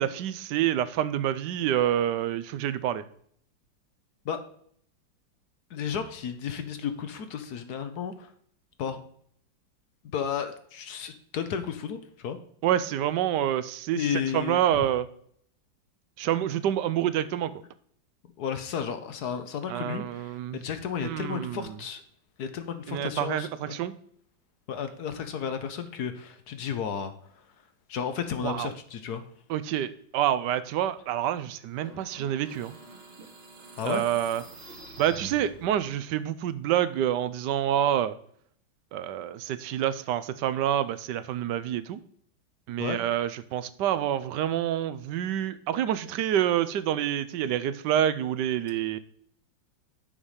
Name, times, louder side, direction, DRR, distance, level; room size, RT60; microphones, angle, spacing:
voice 1, 0.0-3.0 12.6-15.1 16.2-17.5 19.7-20.6 21.0-21.8 22.9-23.9 28.4-28.7 29.5-32.8 33.8-34.4 35.0-38.2 38.9-42.0 42.7-49.0, right 11 dB, 75° right, 14 dB, 1.2 m, -27 dB
voice 2, 5.7-8.3 8.8-9.0 10.0-12.4 13.9-14.7 18.4-22.0 22.4-23.7 24.7-27.1 27.9-29.2 33.8-34.0 42.8-43.0, left 7 dB, 65° left, 9 dB, 1.3 m, -33 dB
sound 1, 31.7-36.0, right 3 dB, 40° right, 1.2 m, -46 dB
7.2 x 5.5 x 4.9 m, 0.62 s
omnidirectional pair, 2.0 m